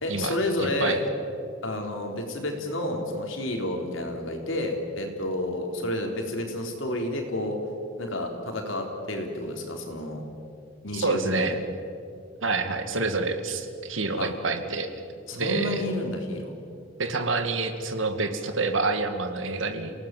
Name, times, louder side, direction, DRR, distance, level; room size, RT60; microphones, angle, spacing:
voice 1, 0.0-1.0 1.6-7.6 8.0-10.2 10.8-11.5 14.2-14.3 15.3-16.5, left 1 dB, 85° left, 2 dB, 3.9 m, -30 dB
voice 2, 10.9-11.6 12.4-14.9 15.3-15.8 17.0-19.9, right 3 dB, 85° right, 7 dB, 2.1 m, -27 dB
29.0 x 18.0 x 7.7 m, 2.5 s
head